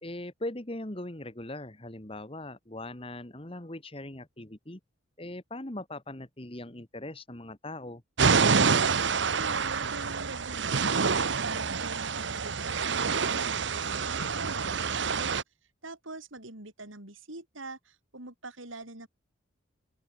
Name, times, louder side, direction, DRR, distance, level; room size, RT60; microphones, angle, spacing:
voice 1, 0.0-4.8 5.2-8.0, left 1 dB, 25° left, 1.6 m, -40 dB
sound 1, 8.2-15.4, right 5 dB, 60° right, 0.9 m, -27 dB
voice 2, 9.0-15.4 15.8-19.1, right 2 dB, 80° right, 6.0 m, -44 dB
open air
head